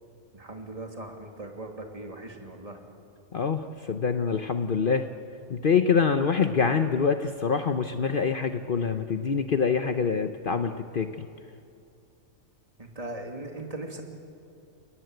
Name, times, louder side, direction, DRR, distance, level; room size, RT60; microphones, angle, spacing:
voice 1, 0.3-2.8 12.8-14.0, right 2 dB, 30° right, 2 dB, 2.7 m, -39 dB
voice 2, 3.3-5.1 5.5-11.3, left 6 dB, 50° left, 8 dB, 1.0 m, -25 dB
30.0 x 19.0 x 7.9 m, 2.6 s
omnidirectional pair, 1.2 m